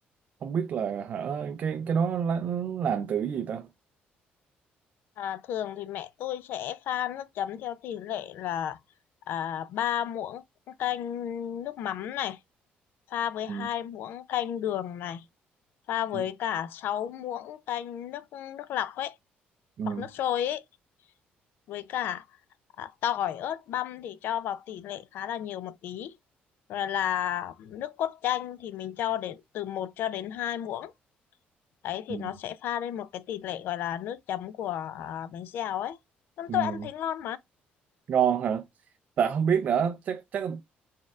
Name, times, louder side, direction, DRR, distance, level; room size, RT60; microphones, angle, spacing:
voice 1, 0.4-3.7 13.5-13.7 16.1-16.2 19.8-20.0 32.1-32.3 36.5-36.7 38.1-38.6 39.2-40.6, right 7 dB, 40° right, 0.4 m, -28 dB
voice 2, 5.2-8.8 9.3-12.4 13.1-15.2 15.9-19.2 19.9-20.6 21.7-22.3 22.8-26.1 26.7-30.9 31.8-36.0 36.4-37.4, left 11 dB, 65° left, 0.4 m, -32 dB
4.2 x 3.5 x 2.3 m
cardioid pair, 165°, 4 cm